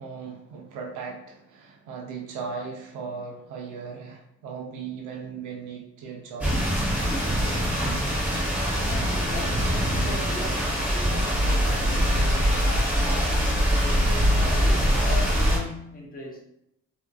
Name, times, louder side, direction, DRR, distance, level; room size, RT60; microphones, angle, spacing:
voice 1, 0.0-6.5, right 5 dB, 90° right, 0 dB, 0.6 m, -37 dB
sound 1, 6.4-15.6, equal, 5° right, 1.0 m, -23 dB
voice 2, 8.8-16.4, left 2 dB, 30° left, -1 dB, 0.8 m, -38 dB
2.8 x 2.3 x 2.2 m, 0.77 s
cardioid pair, 90°, 30 cm